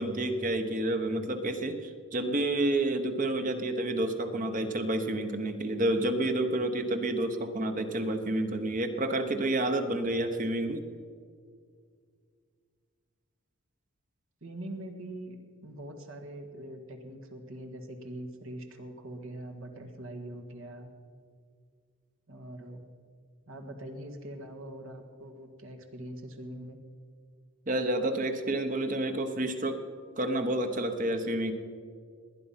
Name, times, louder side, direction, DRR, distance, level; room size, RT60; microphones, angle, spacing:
voice 1, 0.0-10.8 27.7-29.8 30.2-31.5, right 1 dB, 35° right, 7 dB, 1.0 m, -29 dB
voice 2, 14.4-15.4 15.6-20.9 22.3-22.8 23.5-26.8, right 1 dB, 70° right, 5 dB, 1.7 m, -43 dB
19.5 x 10.5 x 5.7 m, 2.1 s
head